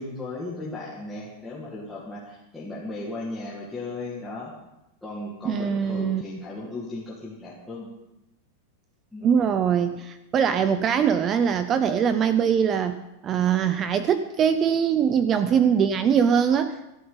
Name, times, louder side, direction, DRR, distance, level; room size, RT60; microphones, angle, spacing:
voice 1, 0.0-4.5 5.0-7.9 9.1-9.3, left 2 dB, 5° left, -7 dB, 2.0 m, -36 dB
voice 2, 5.4-6.2 9.2-16.9, right 7 dB, 20° right, 11 dB, 0.5 m, -22 dB
21.5 x 12.5 x 4.0 m, 0.93 s
supercardioid pair, 175°, 0 cm